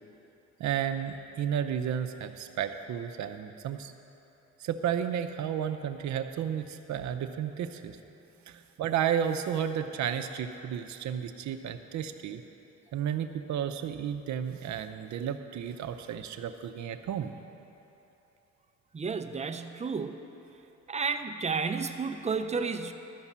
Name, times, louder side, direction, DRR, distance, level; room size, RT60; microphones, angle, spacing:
voice 1, 0.6-3.9 4.6-8.0 8.5-12.4 12.9-17.3, right 9 dB, 70° right, 8 dB, 0.7 m, -32 dB
voice 2, 18.9-20.2 20.9-22.9, right 5 dB, 20° right, 8 dB, 0.6 m, -32 dB
12.0 x 5.5 x 7.3 m, 3.0 s
cardioid pair, 90°, 30 cm